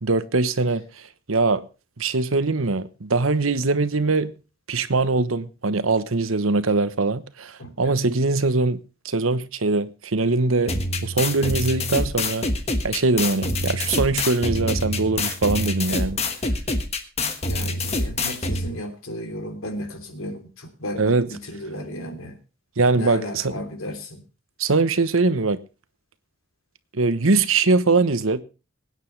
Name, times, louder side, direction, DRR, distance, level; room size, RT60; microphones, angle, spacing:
voice 1, 0.0-0.8 1.3-1.6 2.0-4.3 4.7-10.7 11.0-12.5 12.8-16.2 21.0-21.3 22.8-23.5 24.6-25.6 26.9-28.4, right 3 dB, 80° right, 1.1 m, -22 dB
voice 2, 7.6-7.9 17.5-22.4 22.9-24.2, equal, 85° left, 3.3 m, -34 dB
sound 1, 10.7-18.7, left 2 dB, 30° left, 1.4 m, -26 dB
22.5 x 9.5 x 3.3 m
head